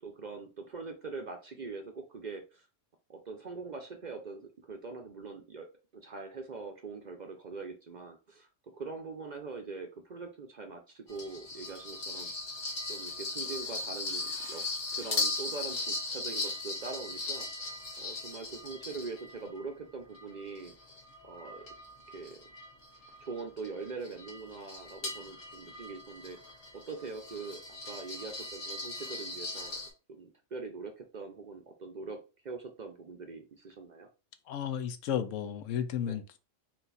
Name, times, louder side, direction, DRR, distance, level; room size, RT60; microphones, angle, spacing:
voice 1, 0.0-2.7 3.1-12.5 12.9-14.6 14.9-20.7 21.2-21.7 22.1-22.5 23.2-26.4 26.7-29.8 30.1-32.2 32.4-34.1 34.7-34.8 36.0-36.2, right 4 dB, 45° right, 0.6 m, -43 dB
sound 1, 11.1-19.6 20.1-29.9, left 3 dB, 50° left, 1.3 m, -39 dB
voice 2, 34.5-36.4, left 9 dB, 80° left, 1.0 m, -33 dB
4.3 x 2.4 x 4.0 m
omnidirectional pair, 1.3 m